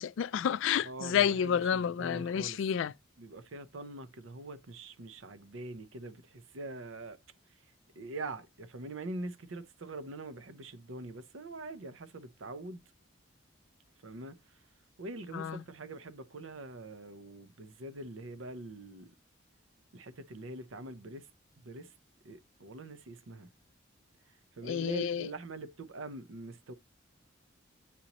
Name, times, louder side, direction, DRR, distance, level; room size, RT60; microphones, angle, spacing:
voice 1, 0.0-2.9 15.3-15.6 24.6-25.3, left 8 dB, 75° left, 0.3 m, -30 dB
voice 2, 0.8-2.6 3.2-7.2 7.5-12.8 14.0-14.6 15.0-19.1 19.9-21.3 21.6-21.9 22.2-23.5 24.3-26.7, right 2 dB, 80° right, 0.7 m, -44 dB
8.4 x 2.9 x 4.0 m
head